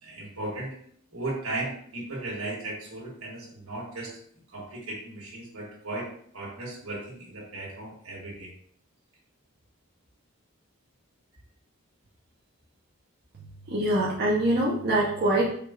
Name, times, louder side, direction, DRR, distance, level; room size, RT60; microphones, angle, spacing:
voice 1, 0.0-0.7 1.1-4.2 4.5-6.1 6.3-8.5, right 2 dB, 80° right, -4 dB, 1.9 m, -36 dB
voice 2, 13.7-15.5, right 1 dB, 45° right, -4 dB, 0.7 m, -24 dB
5.0 x 2.3 x 4.4 m, 0.62 s
head